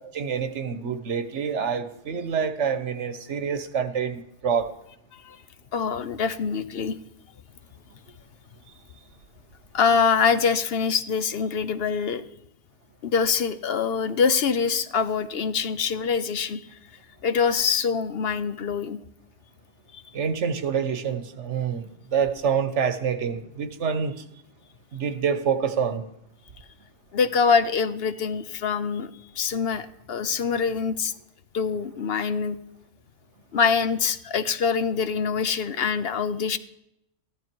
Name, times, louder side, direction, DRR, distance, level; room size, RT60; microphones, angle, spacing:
voice 1, 0.1-4.7 20.1-21.8 22.1-24.1 24.9-26.0, right 7 dB, 85° right, 11 dB, 1.4 m, -26 dB
voice 2, 5.7-7.0 9.7-12.2 13.0-16.6 17.2-19.0 19.9-20.0 27.1-31.1 31.5-32.6 33.5-36.6, left 6 dB, 60° left, 13 dB, 0.9 m, -24 dB
14.5 x 12.0 x 4.6 m, 0.80 s
omnidirectional pair, 1.2 m